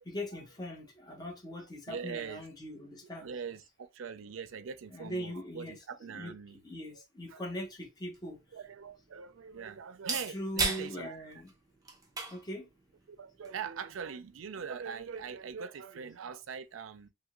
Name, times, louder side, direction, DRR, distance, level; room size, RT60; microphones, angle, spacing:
voice 1, 0.1-3.3 4.9-6.3 6.6-8.4 10.3-11.5 12.3-12.7, left 1 dB, 20° left, 0.8 m, -41 dB
voice 2, 1.9-2.4 3.2-6.6 7.3-7.4 8.5-11.4 13.1-17.1, right 6 dB, 75° right, 0.4 m, -42 dB
sound 1, 7.6-15.6, right 4 dB, 20° right, 0.7 m, -41 dB
2.8 x 2.5 x 2.9 m
head